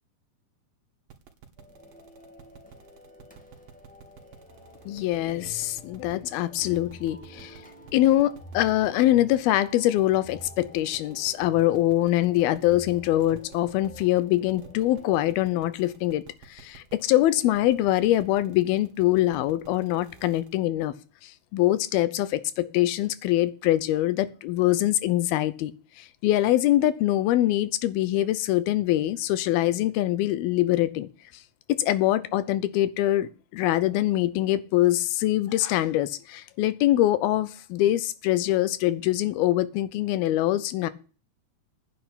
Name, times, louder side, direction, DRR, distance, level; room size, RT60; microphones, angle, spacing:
sound 1, 1.1-20.6, right 8 dB, 70° right, 3.4 m, -50 dB
sound 2, 1.6-15.1, left 1 dB, 5° left, 1.2 m, -52 dB
sound 3, 4.5-14.2, left 1 dB, 65° left, 3.7 m, -50 dB
voice 1, 4.9-7.6 7.9-16.2 16.5-20.9 21.2-25.7 26.0-31.1 31.7-40.9, left 14 dB, 90° left, 16 dB, 2.8 m, -24 dB
10.0 x 6.4 x 8.6 m, 0.36 s
omnidirectional pair, 4.2 m